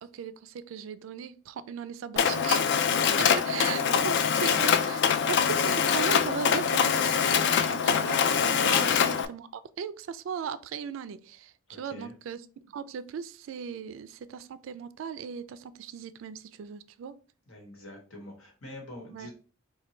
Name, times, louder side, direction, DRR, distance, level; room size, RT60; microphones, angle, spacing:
voice 1, 0.0-2.7 3.2-17.2 19.1-19.3, right 7 dB, 65° right, 0.3 m, -38 dB
Mechanisms, 2.2-9.3, left 7 dB, 55° left, 0.3 m, -24 dB
voice 2, 3.2-3.5 3.9-4.2 11.7-12.1 17.5-19.3, left 1 dB, 80° left, 1.3 m, -45 dB
4.2 x 2.2 x 3.1 m
head